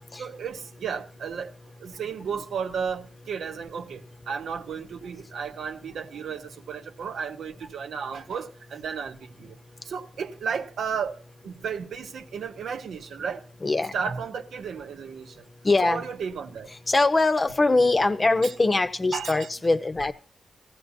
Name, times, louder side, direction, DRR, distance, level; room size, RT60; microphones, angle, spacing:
voice 1, 0.2-1.5 1.8-9.6 9.8-11.2 11.4-13.4 13.9-15.5 15.8-16.7 18.4-18.5 19.1-19.5, right 6 dB, 85° right, 0.7 m, -33 dB
voice 2, 13.6-13.9 15.6-16.0 16.9-20.1, left 2 dB, 35° left, 0.7 m, -22 dB
15.5 x 14.5 x 2.7 m
cardioid pair, 75°, 0 cm